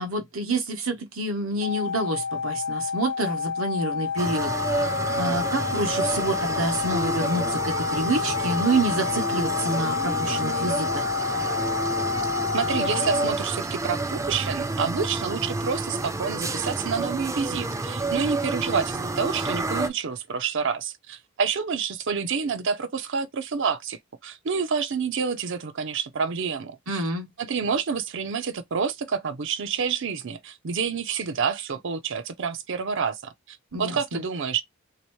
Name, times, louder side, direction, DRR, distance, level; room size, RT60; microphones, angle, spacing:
voice 1, 0.0-11.1 26.9-27.3 33.7-34.2, right 2 dB, 85° right, 1.2 m, -28 dB
sound 1, 1.6-13.3, left 6 dB, 60° left, 0.4 m, -29 dB
sound 2, 4.2-19.9, right 2 dB, 15° right, 0.4 m, -29 dB
voice 2, 12.5-27.0 27.4-34.6, right 6 dB, 65° right, 0.6 m, -28 dB
3.5 x 2.9 x 3.1 m
head